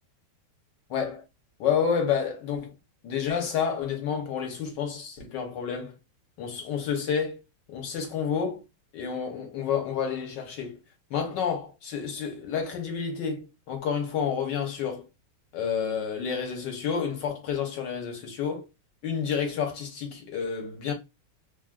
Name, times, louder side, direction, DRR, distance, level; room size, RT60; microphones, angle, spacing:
voice 1, 0.9-1.2 1.6-2.7 3.0-5.9 6.4-7.4 7.7-8.6 8.9-10.8 11.1-15.1 15.5-18.7 19.0-20.9, left 7 dB, 65° left, 1.3 m, -29 dB
3.4 x 2.5 x 2.3 m
omnidirectional pair, 2.3 m